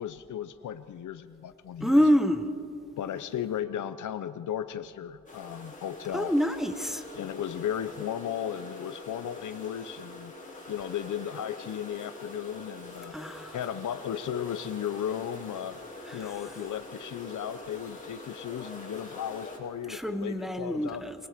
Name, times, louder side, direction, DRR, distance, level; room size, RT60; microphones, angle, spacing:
voice 1, 0.0-2.1 3.0-6.3 7.1-10.3 10.7-13.2 13.5-15.8 16.1-21.0, left 10 dB, 80° left, 11 dB, 0.7 m, -35 dB
voice 2, 1.8-2.5 6.1-7.0 13.1-13.5 19.9-21.1, equal, ahead, 7 dB, 1.2 m, -26 dB
sound 1, 5.3-19.6, left 2 dB, 25° left, 4.6 m, -44 dB
27.5 x 20.0 x 5.1 m, 2.5 s
cardioid pair, 70°, 30 cm